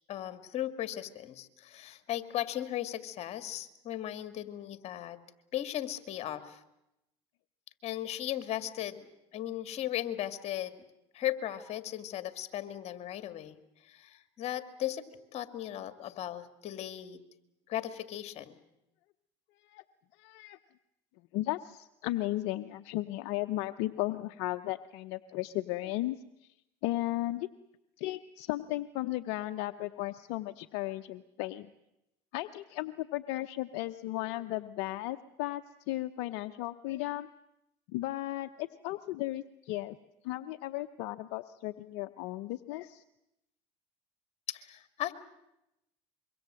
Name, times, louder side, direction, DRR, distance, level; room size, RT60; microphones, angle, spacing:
voice 1, 0.1-5.2 5.5-6.6 7.8-9.1 9.3-10.8 11.1-13.6 13.8-17.2 17.7-18.6 44.5-45.1, left 12 dB, 50° left, 10 dB, 2.1 m, -37 dB
voice 2, 20.1-20.6 21.3-26.5 26.8-27.5 28.0-31.7 32.3-37.3 37.9-40.0 40.2-43.0, left 17 dB, 70° left, 9 dB, 0.8 m, -35 dB
25.0 x 23.5 x 7.7 m, 0.87 s
supercardioid pair, 90°, 14 cm